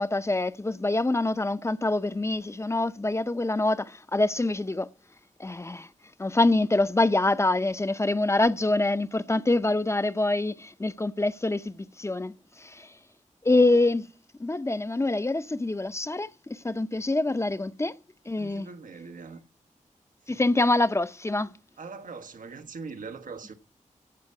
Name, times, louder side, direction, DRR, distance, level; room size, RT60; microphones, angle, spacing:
voice 1, 0.0-4.9 5.4-5.9 6.2-12.3 12.6-12.9 13.4-14.0 14.4-17.9 18.3-18.7 20.3-21.5, left 2 dB, 20° left, 0.6 m, -25 dB
voice 2, 18.4-19.4 20.3-20.4 21.8-23.5, right 4 dB, 90° right, 1.3 m, -41 dB
16.0 x 5.7 x 9.5 m
wide cardioid pair, 105°, 13 cm